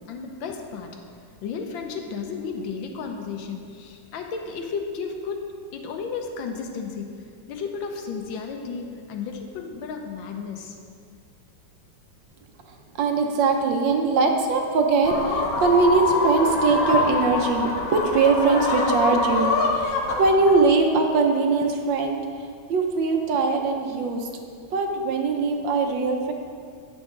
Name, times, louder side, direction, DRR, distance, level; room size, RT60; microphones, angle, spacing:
voice 1, 0.1-0.9 1.4-5.4 5.7-7.1 7.5-10.8, left 5 dB, 85° left, 4 dB, 1.5 m, -33 dB
voice 2, 13.0-22.2 22.7-24.3 24.7-26.3, right 4 dB, 75° right, 3 dB, 1.5 m, -21 dB
sound 1, 15.0-20.6, left 3 dB, 55° left, 1.3 m, -25 dB
9.3 x 6.3 x 3.8 m, 2.2 s
omnidirectional pair, 2.1 m